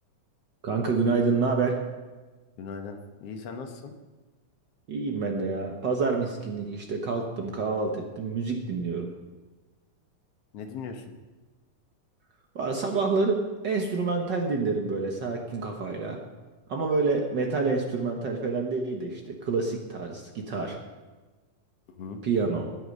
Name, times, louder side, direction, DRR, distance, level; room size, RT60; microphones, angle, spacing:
voice 1, 0.6-1.8 4.9-9.1 12.5-13.4 13.6-16.2 16.7-20.8 22.2-22.7, right 4 dB, 70° right, 1 dB, 1.0 m, -27 dB
voice 2, 2.6-3.9 10.5-11.1 22.0-22.2, left 5 dB, 60° left, 5 dB, 1.9 m, -38 dB
21.0 x 8.0 x 5.4 m, 1.3 s
omnidirectional pair, 3.6 m